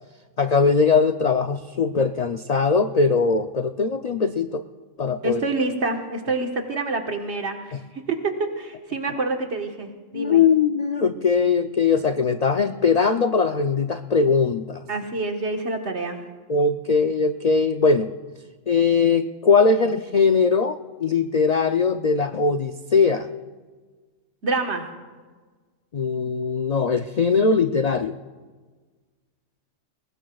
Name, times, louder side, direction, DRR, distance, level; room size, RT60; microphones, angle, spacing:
voice 1, 0.4-4.6 5.0-5.4 7.7-7.8 10.1-14.8 16.5-18.1 18.7-23.3 25.9-28.2, left 5 dB, 65° left, 8 dB, 0.4 m, -20 dB
voice 2, 5.2-7.8 8.1-10.4 14.9-16.2 24.4-24.8, right 3 dB, 60° right, 3 dB, 1.7 m, -27 dB
21.5 x 19.5 x 2.3 m, 1.4 s
omnidirectional pair, 1.3 m